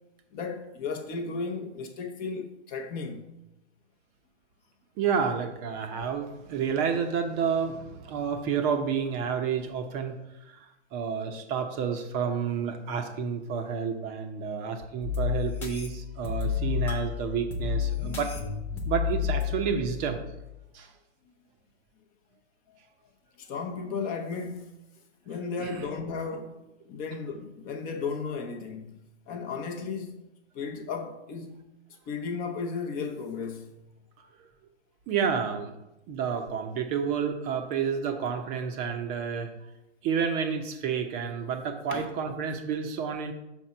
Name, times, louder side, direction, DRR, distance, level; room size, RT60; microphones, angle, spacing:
voice 1, 0.3-3.2 23.4-24.7 25.3-30.2 30.5-31.6 32.1-33.8 41.9-42.1, left 5 dB, 25° left, 0.7 m, -35 dB
voice 2, 5.0-10.1 10.4-18.3 18.8-20.2 20.7-20.9 25.6-25.9 34.2-34.3 35.1-35.7 36.1-39.5 40.0-43.3, right 7 dB, 25° right, 0.7 m, -30 dB
sound 1, 15.0-20.6, left 7 dB, 5° left, 0.3 m, -31 dB
5.7 x 4.4 x 5.5 m
hypercardioid pair, 130°, 35 cm